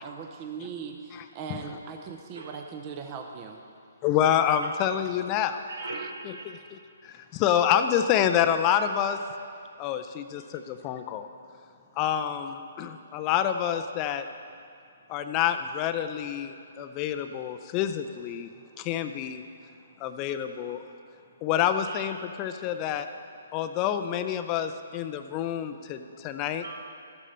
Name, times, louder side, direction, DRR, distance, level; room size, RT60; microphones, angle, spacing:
voice 1, 0.0-3.6, right 6 dB, 30° right, 4 dB, 0.7 m, -39 dB
voice 2, 4.0-5.6 6.2-9.2 9.8-11.3 12.0-14.2 15.1-18.5 18.8-19.4 20.0-20.8 21.4-23.1 23.5-26.6, left 9 dB, 25° left, 8 dB, 0.4 m, -27 dB
voice 3, 5.7-6.6 21.9-22.1 26.6-26.8, right 3 dB, 75° right, 1 dB, 1.6 m, -39 dB
13.0 x 8.2 x 4.3 m, 2.4 s
hypercardioid pair, 150°, 0 cm